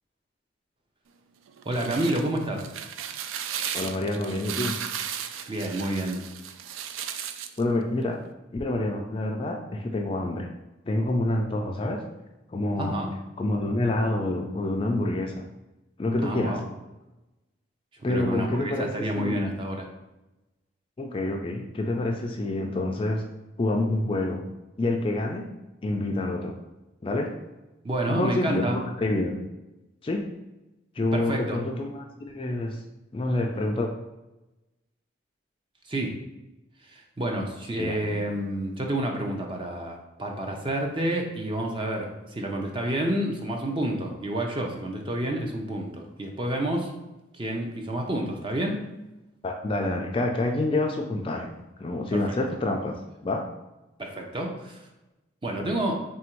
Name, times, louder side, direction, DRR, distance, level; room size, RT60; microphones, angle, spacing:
sound 1, 1.5-7.6, right 8 dB, 85° right, 0.3 m, -35 dB
voice 1, 1.6-2.6 5.5-6.2 12.8-13.1 16.2-16.6 18.0-19.9 27.8-28.8 31.1-31.6 35.8-36.2 36.8-46.9 47.3-48.8 52.1-52.2 54.0-54.9 55.4-56.0, right 1 dB, 25° right, 1 dB, 0.5 m, -29 dB
voice 2, 3.7-4.8 7.6-8.2 8.5-10.5 10.9-12.0 12.5-13.0 13.4-15.4 16.0-16.6 18.0-19.4 21.0-23.2 23.6-24.4 24.8-25.5 25.8-26.6 27.0-27.4 28.1-29.4 30.0-30.3 31.0-32.8 33.1-33.9 37.8-38.0 49.4-51.5 51.8-53.0 53.2-53.5, left 2 dB, 25° left, 2 dB, 0.3 m, -27 dB
3.6 x 2.6 x 4.4 m, 0.99 s
head